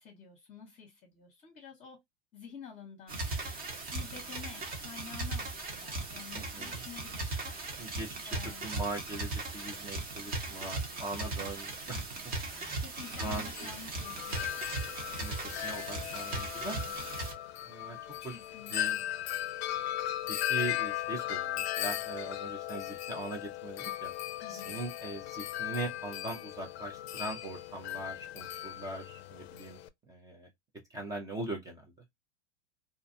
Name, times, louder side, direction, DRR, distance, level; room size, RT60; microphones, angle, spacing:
voice 1, 0.0-2.0 2.3-3.4 3.9-7.6 8.2-8.7 11.1-11.5 12.8-14.5 16.4-16.9 18.3-19.0 24.4-24.8, left 6 dB, 20° left, 0.9 m, -50 dB
sound 1, 3.1-17.3, right 3 dB, 25° right, 0.9 m, -38 dB
voice 2, 6.3-6.8 7.8-8.3 8.6-12.0 12.5-13.7 15.2-16.8 17.7-18.0 18.2-18.4 18.7-19.0 20.3-24.1 24.5-29.8 30.1-30.5 30.9-31.9, right 2 dB, 10° right, 0.4 m, -41 dB
Wind chime, 13.0-29.9, left 13 dB, 70° left, 0.5 m, -37 dB
2.4 x 2.2 x 2.6 m
hypercardioid pair, 135°, 33 cm